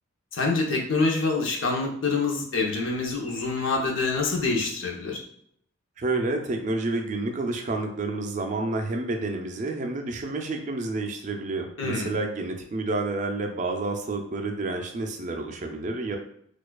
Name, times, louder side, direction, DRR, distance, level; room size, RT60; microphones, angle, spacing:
voice 1, 0.3-5.2 11.8-12.1, left 3 dB, 70° left, 0 dB, 0.7 m, -26 dB
voice 2, 6.0-16.2, right 2 dB, 40° right, 4 dB, 0.4 m, -29 dB
4.5 x 2.3 x 2.2 m, 0.68 s
head